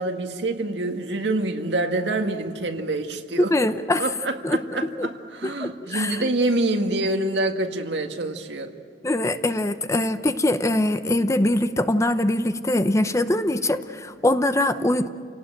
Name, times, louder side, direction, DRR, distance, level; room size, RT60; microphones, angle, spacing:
voice 1, 0.0-3.5 4.0-8.7, right 2 dB, 85° right, 5 dB, 1.8 m, -26 dB
voice 2, 3.5-4.0 4.4-4.6 5.0-5.1 5.4-6.2 9.0-15.1, left 1 dB, 15° left, 10 dB, 0.8 m, -23 dB
29.5 x 18.5 x 9.0 m, 2.3 s
head